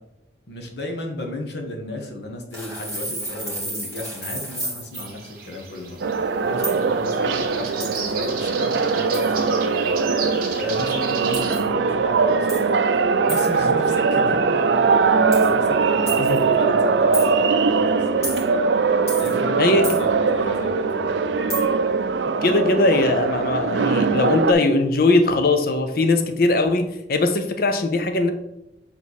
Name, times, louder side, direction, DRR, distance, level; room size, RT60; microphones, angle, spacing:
voice 1, 0.5-6.1 6.4-10.0 10.6-12.8 13.2-18.4 19.1-21.5, left 2 dB, 70° left, 2 dB, 1.3 m, -34 dB
sound 1, 2.5-5.1 6.6-6.8 7.8-8.3 9.1-9.4 11.3-11.7 12.5-12.7 13.3-13.6 15.3-15.5 16.1-16.4 17.1-17.3 18.2-18.4 19.1-19.3 19.8-20.0 21.5-21.6, right 1 dB, 15° left, 1.9 m, -31 dB
sound 2, 4.9-11.6, right 5 dB, 50° right, 1.3 m, -35 dB
sound 3, 6.0-24.5, right 4 dB, 80° right, 0.4 m, -21 dB
voice 2, 19.6-20.0 22.4-28.3, left 2 dB, 55° left, 7 dB, 0.6 m, -20 dB
7.2 x 3.6 x 4.1 m, 0.82 s
head